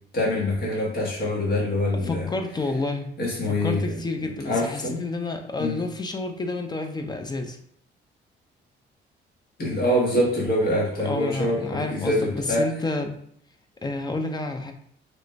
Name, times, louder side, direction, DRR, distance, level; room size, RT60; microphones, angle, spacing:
voice 1, 0.1-2.3 3.2-3.8 4.4-5.0 5.6-5.8 9.6-12.6, left 1 dB, 50° left, -3 dB, 1.4 m, -24 dB
voice 2, 2.0-3.1 3.5-7.6 11.0-13.2 13.8-14.7, left 2 dB, 20° left, 5 dB, 0.5 m, -29 dB
3.0 x 2.5 x 3.2 m, 0.65 s
cardioid pair, 90°, 20 cm